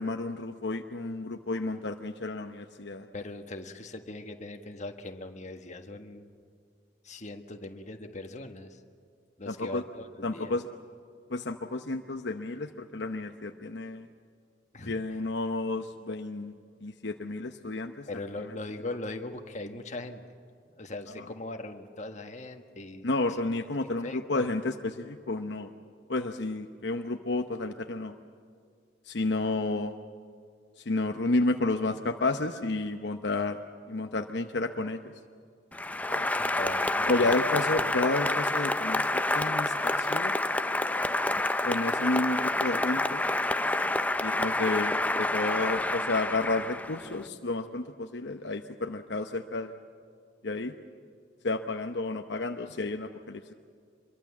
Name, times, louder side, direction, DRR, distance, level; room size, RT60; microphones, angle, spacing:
voice 1, 0.0-3.1 9.5-9.8 10.2-10.7 11.3-14.1 14.9-16.5 16.8-18.1 23.0-25.7 26.1-28.1 29.1-29.9 30.8-33.6 33.9-35.0 36.1-36.3 37.1-40.3 41.6-43.2 44.2-49.8 50.4-50.7 51.4-53.5, left 2 dB, 65° left, 5 dB, 0.9 m, -31 dB
voice 2, 3.1-6.3 7.0-8.8 9.4-10.6 14.7-15.2 18.1-20.2 20.7-23.4 23.8-24.5 36.4-37.3 37.8-37.9, left 2 dB, 40° left, 5 dB, 1.6 m, -40 dB
Applause, 35.7-47.2, left 2 dB, 10° left, 0.6 m, -28 dB
25.5 x 23.0 x 7.3 m, 2.3 s
head